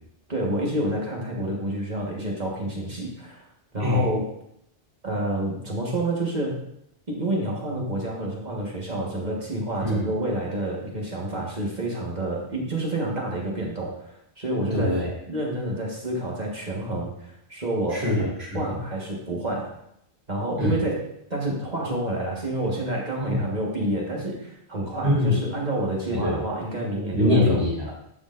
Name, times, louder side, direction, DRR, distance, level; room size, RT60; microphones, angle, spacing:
voice 1, 0.3-3.4 3.7-4.3 5.0-6.6 7.1-15.0 15.3-18.1 18.5-19.7 20.3-27.6, right 1 dB, 45° right, -2 dB, 1.6 m, -28 dB
voice 2, 3.8-4.1 9.8-10.1 14.7-15.1 17.9-18.6 20.6-20.8 23.2-23.4 25.0-25.3 26.2-26.3 27.1-27.9, left 1 dB, 75° right, -6 dB, 3.9 m, -23 dB
11.5 x 6.3 x 2.5 m, 0.76 s
omnidirectional pair, 1.1 m